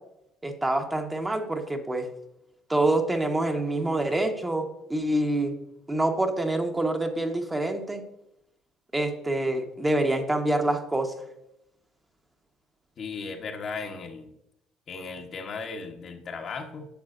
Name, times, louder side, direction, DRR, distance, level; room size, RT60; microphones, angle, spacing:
voice 1, 0.4-2.1 2.7-5.6 5.9-8.0 8.9-11.1, right 1 dB, 15° right, 4 dB, 1.2 m, -26 dB
voice 2, 13.0-14.3 14.9-16.9, left 4 dB, 50° left, 3 dB, 1.2 m, -36 dB
10.0 x 7.0 x 2.6 m, 0.81 s
supercardioid pair, 65°, 0 cm